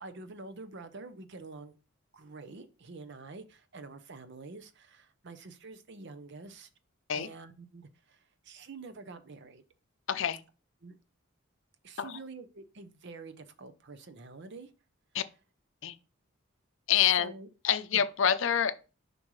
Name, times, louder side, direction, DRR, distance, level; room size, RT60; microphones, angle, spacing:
voice 1, 0.0-1.8 2.1-6.7 7.1-9.6 10.8-11.0 11.8-14.7 16.9-17.5 17.9-18.0, right 3 dB, 55° right, 0.7 m, -47 dB
voice 2, 10.1-10.4 12.0-12.2 15.1-15.2 15.8-16.0 16.9-17.3 17.6-18.8, left 9 dB, 60° left, 0.5 m, -27 dB
7.3 x 5.3 x 3.1 m
head